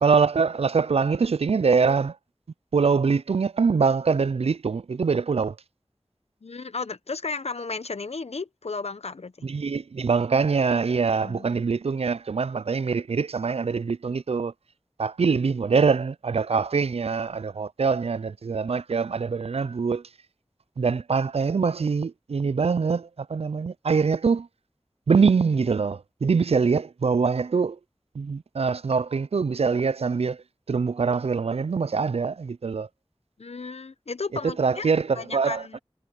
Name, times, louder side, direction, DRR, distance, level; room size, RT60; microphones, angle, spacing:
voice 1, 0.0-2.1 2.7-5.5 9.4-14.5 15.0-20.0 20.8-24.5 25.1-27.8 28.2-30.4 30.7-32.9 34.6-35.8, right 5 dB, 75° right, 0.4 m, -24 dB
voice 2, 6.4-9.5 11.2-11.6 15.2-15.4 33.4-35.8, left 4 dB, 90° left, 0.9 m, -34 dB
wide cardioid pair, 45°, 10 cm